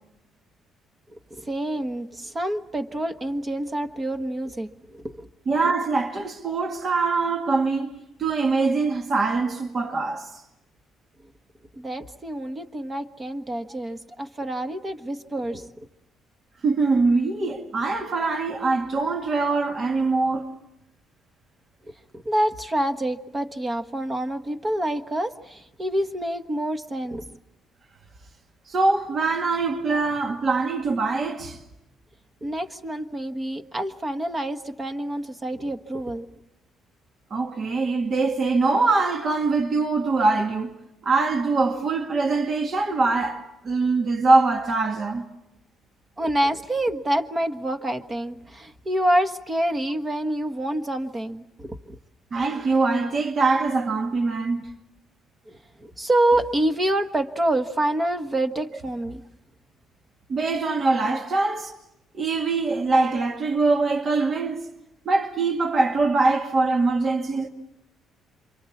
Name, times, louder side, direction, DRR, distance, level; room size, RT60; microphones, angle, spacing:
voice 1, 1.3-5.3 11.7-15.9 22.1-27.4 32.4-36.3 46.2-52.0 55.5-55.6 55.8-59.2, right 1 dB, 20° right, 1.4 m, -27 dB
voice 2, 5.5-10.4 16.6-20.5 28.7-31.6 37.3-40.7 41.0-45.2 52.3-54.6 60.3-61.7 62.1-64.6 65.1-67.5, right 3 dB, 40° right, 1.9 m, -23 dB
28.0 x 25.5 x 7.3 m
cardioid pair, 130°, 0 cm